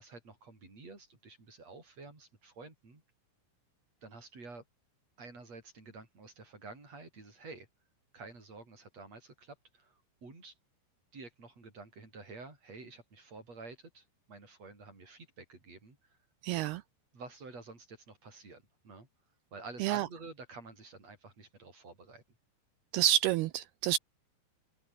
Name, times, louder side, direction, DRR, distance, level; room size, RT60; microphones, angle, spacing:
voice 1, 0.0-3.0 4.0-4.6 5.2-7.7 8.1-10.5 11.1-16.2 17.1-19.1 19.5-22.2, right 3 dB, 35° right, 8.5 m, -50 dB
voice 2, 16.4-16.8 19.8-20.1 22.9-24.0, right 13 dB, 85° right, 2.3 m, -28 dB
open air
omnidirectional pair, 5.4 m